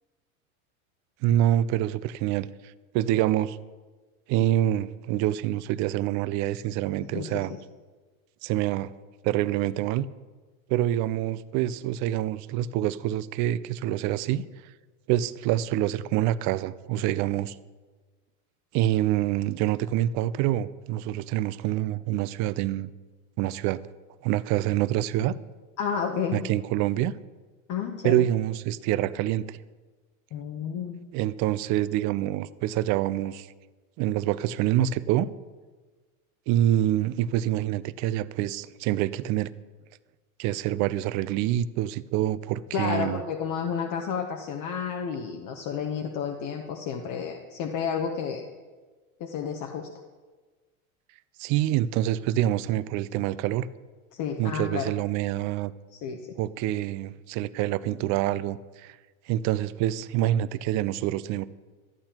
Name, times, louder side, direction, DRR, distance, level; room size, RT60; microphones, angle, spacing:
voice 1, 1.2-3.6 4.3-7.5 8.4-8.9 9.2-10.1 10.7-14.5 15.1-17.6 18.7-22.9 23.4-23.8 24.2-25.3 26.3-27.1 28.0-29.6 31.1-33.5 34.0-35.3 36.5-39.5 40.4-43.2 51.4-53.7 54.4-55.7 56.4-59.0 59.3-61.5, right 13 dB, 45° right, 16 dB, 0.4 m, -26 dB
voice 2, 7.1-7.5 25.8-26.4 27.7-28.2 30.3-31.0 42.7-48.5 49.2-49.9 54.1-54.9 55.9-56.2, left 7 dB, 45° left, 3 dB, 0.9 m, -31 dB
13.5 x 8.6 x 2.9 m, 1.3 s
hypercardioid pair, 100°, 43 cm